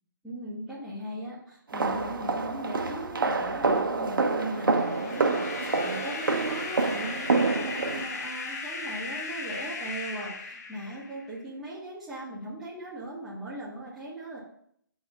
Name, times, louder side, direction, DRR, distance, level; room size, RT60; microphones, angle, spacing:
voice 1, 0.2-14.4, right 1 dB, 5° right, -9 dB, 1.3 m, -38 dB
sound 1, 1.7-8.0, right 3 dB, 90° right, 0.9 m, -27 dB
sound 2, 4.3-11.3, left 4 dB, 45° left, 1.1 m, -37 dB
6.2 x 4.1 x 5.7 m, 0.68 s
hypercardioid pair, 160°, 11 cm